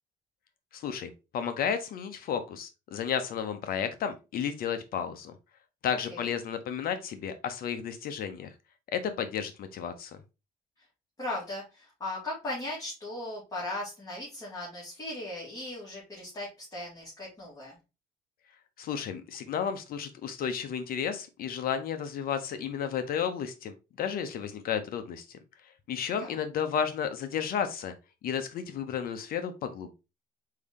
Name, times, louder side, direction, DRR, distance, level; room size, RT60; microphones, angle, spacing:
voice 1, 0.7-5.3 5.8-8.5 8.9-10.2 18.8-25.4 25.9-27.9 28.2-29.9, left 7 dB, 60° left, 9 dB, 0.7 m, -32 dB
voice 2, 11.2-17.8 26.1-26.4, left 1 dB, 20° left, -6 dB, 2.3 m, -38 dB
4.9 x 2.8 x 3.5 m, 0.28 s
cardioid pair, 110°, 17 cm